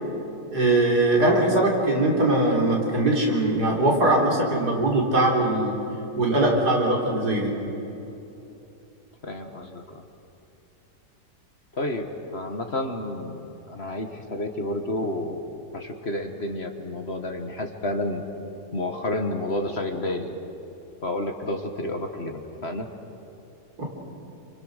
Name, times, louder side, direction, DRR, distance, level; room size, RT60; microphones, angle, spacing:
voice 1, 0.5-5.7 6.2-7.5 23.8-23.9, right 2 dB, 75° right, -2 dB, 4.6 m, -21 dB
voice 2, 9.2-10.0 11.7-15.4 15.7-18.2 18.7-20.4 21.0-22.9, left 1 dB, 40° left, 5 dB, 1.7 m, -30 dB
29.0 x 26.0 x 6.5 m, 3.0 s
omnidirectional pair, 1.7 m